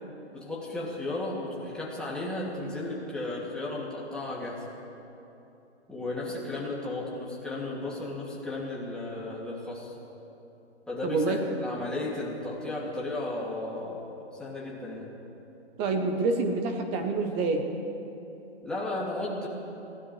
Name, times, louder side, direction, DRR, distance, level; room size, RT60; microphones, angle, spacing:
voice 1, 0.3-4.7 5.9-9.9 10.9-15.1 18.6-19.5, left 2 dB, ahead, -6 dB, 2.4 m, -34 dB
voice 2, 11.0-11.4 15.8-17.7, right 3 dB, 15° right, 4 dB, 0.8 m, -27 dB
27.0 x 16.5 x 3.2 m, 3.0 s
hypercardioid pair, 150°, 34 cm